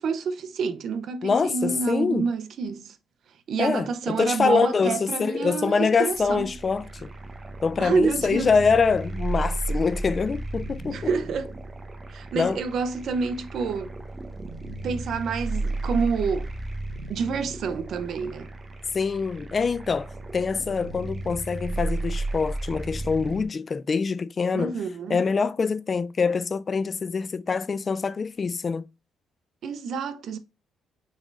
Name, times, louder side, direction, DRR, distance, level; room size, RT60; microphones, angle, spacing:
voice 1, 0.0-3.0 3.5-6.5 7.8-8.5 10.9-11.5 12.1-13.9 14.8-16.5 17.1-18.5 24.5-25.2 29.6-30.4, right 5 dB, 65° right, 0.7 m, -28 dB
voice 2, 1.2-2.3 3.6-7.1 7.6-11.1 12.3-12.6 18.9-24.7 25.1-28.9, left 5 dB, 40° left, 0.3 m, -25 dB
sound 1, 6.1-23.5, right 2 dB, 25° right, 0.9 m, -34 dB
6.4 x 3.3 x 2.5 m
cardioid pair, 90°, 0 cm